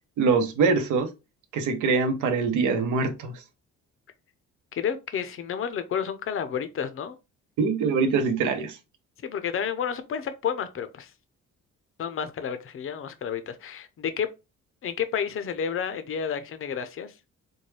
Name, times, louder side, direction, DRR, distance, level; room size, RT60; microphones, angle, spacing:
voice 1, 0.2-1.1 1.5-3.3 7.6-8.8, right 4 dB, 85° right, 0.9 m, -23 dB
voice 2, 4.7-7.2 9.2-11.1 12.0-14.3 14.8-17.3, left 7 dB, 45° left, 0.6 m, -31 dB
4.5 x 2.2 x 3.2 m
cardioid pair, 90°, 30 cm